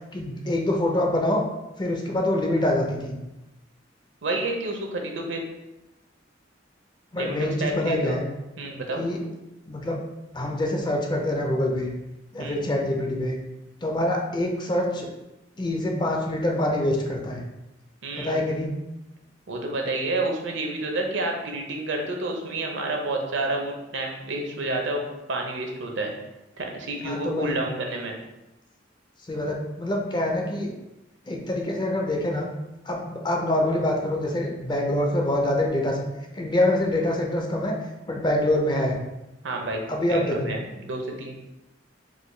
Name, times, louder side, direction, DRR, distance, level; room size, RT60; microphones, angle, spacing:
voice 1, 0.1-1.4 1.8-3.2 7.1-8.2 8.9-9.2 9.7-10.0 10.3-11.9 12.3-13.4 13.8-15.1 15.6-17.4 18.2-18.7 27.0-27.6 29.3-30.7 31.3-32.5 32.9-36.0 36.3-37.8 38.1-39.0 39.9-40.5, left 1 dB, 25° left, 1 dB, 0.4 m, -25 dB
voice 2, 4.2-5.4 7.1-8.2 8.6-9.1 12.4-12.6 18.0-18.4 19.5-26.1 26.6-28.1 39.4-41.3, right 2 dB, 70° right, 2 dB, 0.6 m, -29 dB
3.8 x 2.2 x 3.2 m, 0.97 s
head